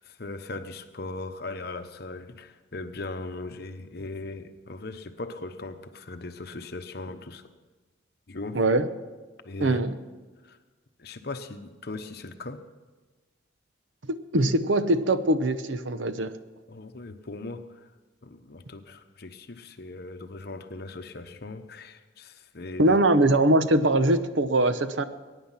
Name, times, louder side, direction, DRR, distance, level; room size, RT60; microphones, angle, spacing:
voice 1, 0.0-7.4 8.3-8.6 9.4-9.8 10.4-10.6 11.0-12.6 16.7-17.9 18.2-23.0, left 2 dB, 55° left, 8 dB, 1.0 m, -39 dB
voice 2, 8.5-8.9 9.6-9.9 14.1-16.3 22.8-25.0, right 1 dB, 75° right, 11 dB, 0.9 m, -22 dB
21.0 x 10.0 x 5.8 m, 1.3 s
head